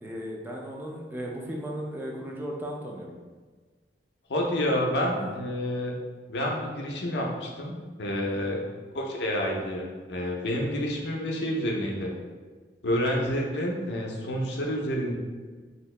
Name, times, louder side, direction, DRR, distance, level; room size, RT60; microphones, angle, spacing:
voice 1, 0.0-3.1 5.1-5.4 8.2-8.4, equal, 10° right, -2 dB, 0.3 m, -36 dB
voice 2, 4.3-5.9 6.3-7.7 8.0-8.6 8.9-12.1 12.8-15.1, equal, 70° left, -1 dB, 0.5 m, -29 dB
2.8 x 2.7 x 3.2 m, 1.4 s
head